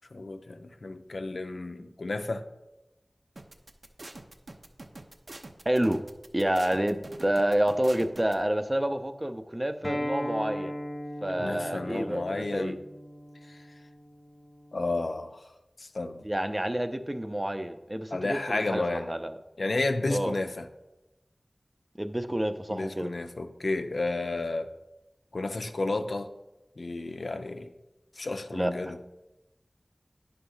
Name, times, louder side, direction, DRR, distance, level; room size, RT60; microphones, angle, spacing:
voice 1, 0.1-2.4 11.4-12.8 13.5-13.6 14.7-15.4 15.8-16.2 18.1-19.1 19.6-20.7 22.7-24.7 25.3-26.3 26.8-27.7 28.2-29.0, left 2 dB, 85° left, 7 dB, 0.5 m, -32 dB
sound 1, 3.4-8.3, right 2 dB, 65° right, 0.6 m, -45 dB
voice 2, 5.7-6.0 6.3-10.8 11.2-12.8 16.2-19.3 20.1-20.3 22.0-23.1 28.5-29.0, right 1 dB, 20° right, 8 dB, 0.5 m, -29 dB
Acoustic guitar, 9.8-15.0, equal, 25° left, 0.6 m, -38 dB
9.8 x 3.5 x 5.6 m, 1.0 s
wide cardioid pair, 50°, 0 cm